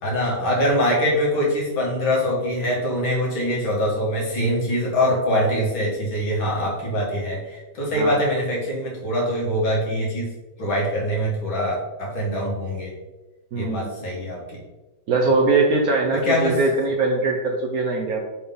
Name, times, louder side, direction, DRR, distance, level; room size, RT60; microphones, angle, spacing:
voice 1, 0.0-10.3 10.6-12.9 13.5-14.6 15.2-15.3 16.1-16.6, equal, 80° left, -5 dB, 2.7 m, -23 dB
voice 2, 13.5-13.9 15.1-18.2, right 3 dB, 60° right, 1 dB, 1.0 m, -21 dB
6.8 x 3.8 x 3.9 m, 1.1 s
omnidirectional pair, 2.1 m